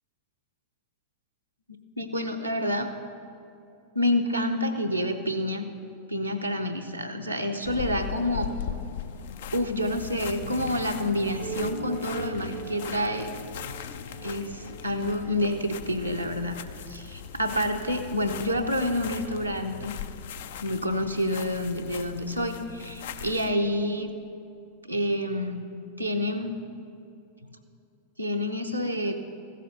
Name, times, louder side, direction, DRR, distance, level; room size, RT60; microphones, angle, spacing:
voice 1, 2.0-2.9 3.9-5.7 6.1-8.5 9.5-13.3 14.2-16.6 16.9-19.9 20.6-24.1 24.9-25.7 26.0-26.5 28.2-29.2, left 1 dB, 90° right, 1 dB, 0.7 m, -28 dB
sound 1, 7.7-23.5, left 9 dB, 55° left, 0.4 m, -39 dB
sound 2, 11.4-16.3, right 7 dB, 45° right, 0.5 m, -41 dB
15.0 x 7.7 x 6.6 m, 2.6 s
figure-of-eight pair, 90°, 0 cm